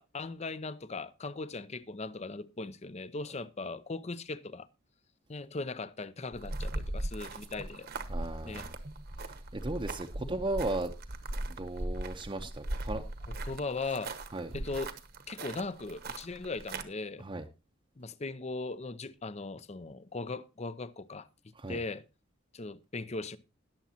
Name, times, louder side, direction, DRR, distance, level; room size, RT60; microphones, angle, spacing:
voice 1, 0.0-4.7 5.3-7.9 8.4-8.7 10.2-10.4 13.4-14.1 14.5-14.9 15.3-17.2 18.0-21.3 21.7-22.0 22.5-23.4, left 3 dB, 35° left, 0.6 m, -38 dB
sound 1, 6.3-16.8, right 1 dB, 55° right, 1.1 m, -39 dB
voice 2, 8.1-8.8 9.5-10.9 11.5-13.0 14.3-14.5 17.2-17.4 21.5-21.8, right 2 dB, 25° right, 0.7 m, -36 dB
20.5 x 7.3 x 2.8 m
head